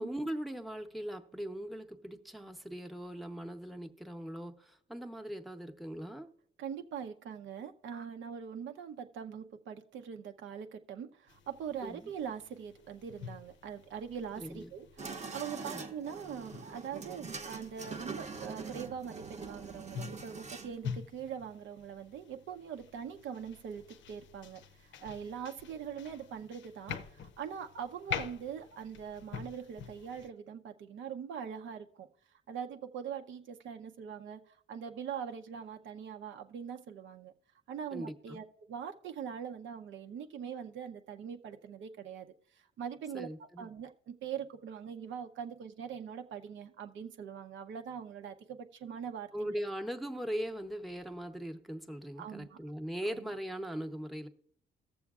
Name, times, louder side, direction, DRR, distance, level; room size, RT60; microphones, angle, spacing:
voice 1, 0.0-6.3 11.8-12.1 14.4-14.7 15.6-15.8 37.9-38.4 43.1-43.7 49.3-54.3, equal, ahead, 0.8 m, -40 dB
voice 2, 6.6-32.1 32.5-37.3 37.7-42.3 42.5-49.5 52.2-52.6 53.1-53.3, right 7 dB, 70° right, 0.7 m, -42 dB
sound 1, 11.3-30.3, left 7 dB, 70° left, 0.6 m, -47 dB
sound 2, 15.0-20.7, right 4 dB, 35° right, 0.8 m, -43 dB
19.5 x 7.0 x 2.4 m
cardioid pair, 90°, 20 cm